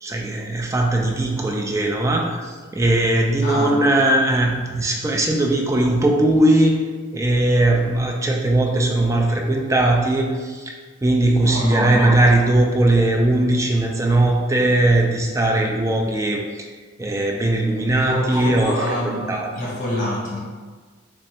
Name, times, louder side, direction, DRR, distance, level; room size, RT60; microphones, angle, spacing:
voice 1, 0.0-6.8 7.1-10.7 11.0-16.7 17.0-19.0 19.3-19.5, right 1 dB, 15° right, 0 dB, 0.3 m, -19 dB
voice 2, 11.4-11.9 18.0-20.4, left 1 dB, 40° left, -5 dB, 1.0 m, -26 dB
3.3 x 3.1 x 2.9 m, 1.5 s
head